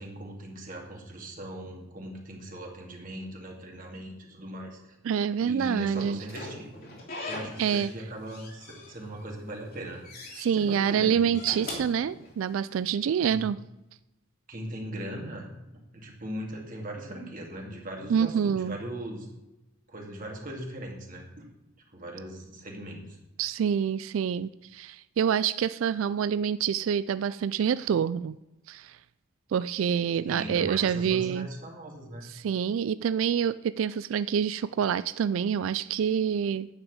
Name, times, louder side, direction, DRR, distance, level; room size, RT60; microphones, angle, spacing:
voice 1, 0.0-4.9 5.4-6.7 7.3-10.0 10.3-11.3 13.3-13.4 14.5-19.3 19.9-21.4 21.9-23.2 30.2-32.2, right 1 dB, 45° right, 0 dB, 2.3 m, -39 dB
voice 2, 5.0-6.2 7.6-7.9 10.4-13.6 18.1-18.8 23.4-28.4 28.7-29.0 29.5-31.5 32.3-36.7, right 8 dB, 80° right, 16 dB, 0.3 m, -27 dB
Slam / Squeak, 5.9-8.0 8.3-9.2 9.6-10.5 11.2-12.7, left 2 dB, 50° left, 2.8 m, -41 dB
10.0 x 6.0 x 7.9 m, 0.96 s
head